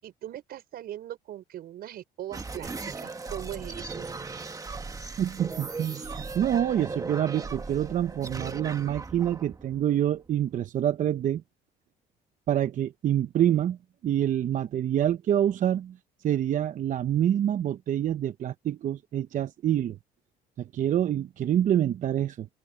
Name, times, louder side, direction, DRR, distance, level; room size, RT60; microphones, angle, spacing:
voice 1, 0.0-4.1, right 12 dB, 65° right, 5.3 m, -40 dB
sound 1, 2.3-10.5, right 4 dB, 20° right, 1.6 m, -38 dB
voice 2, 5.2-11.4 12.5-13.8 14.0-16.0 16.2-20.0 20.6-22.5, right 10 dB, 50° right, 0.7 m, -26 dB
open air
cardioid pair, 110°, 17 cm